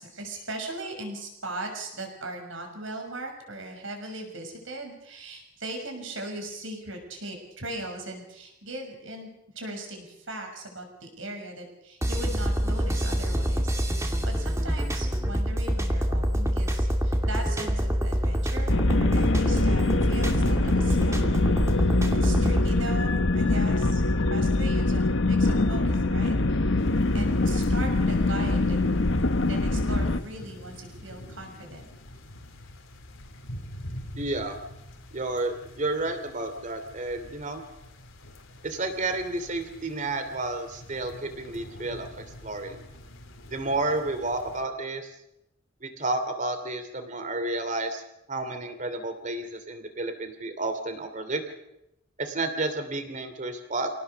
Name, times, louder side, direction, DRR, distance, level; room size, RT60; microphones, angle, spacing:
voice 1, 0.0-9.3 9.5-26.8 27.1-28.9 29.5-31.9, right 2 dB, 70° right, 3 dB, 6.3 m, -39 dB
sound 1, 12.0-22.7, equal, 15° right, 2.5 m, -26 dB
sound 2, 18.7-30.2, left 2 dB, 65° left, 1.1 m, -24 dB
sound 3, 26.8-44.6, left 1 dB, 80° left, 3.1 m, -45 dB
voice 2, 34.1-34.6 35.1-37.6 38.6-42.1 42.4-42.8 43.5-45.1 45.8-48.0 48.3-51.4 52.2-53.9, right 2 dB, 40° right, 9 dB, 2.8 m, -31 dB
27.0 x 18.0 x 6.8 m, 0.85 s
head